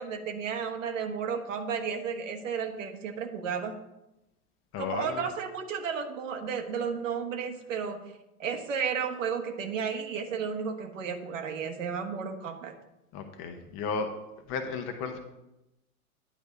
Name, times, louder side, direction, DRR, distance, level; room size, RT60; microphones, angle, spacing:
voice 1, 0.0-3.8 4.8-8.0 8.4-12.7, right 6 dB, 60° right, 5 dB, 1.4 m, -33 dB
voice 2, 4.7-5.3 13.1-14.1 14.5-15.2, left 5 dB, 30° left, 6 dB, 0.9 m, -34 dB
9.9 x 3.4 x 6.7 m, 0.91 s
figure-of-eight pair, 105°, 43 cm